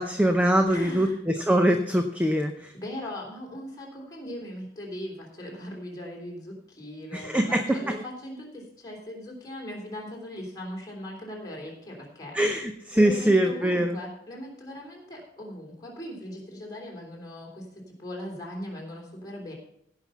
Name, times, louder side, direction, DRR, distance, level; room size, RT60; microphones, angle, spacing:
voice 1, 0.0-2.7 7.1-8.0 12.3-13.9, right 1 dB, 10° right, 6 dB, 0.6 m, -23 dB
voice 2, 0.7-1.2 2.7-12.4 12.9-19.5, left 1 dB, 20° left, -2 dB, 3.4 m, -39 dB
16.5 x 5.9 x 5.6 m, 0.72 s
head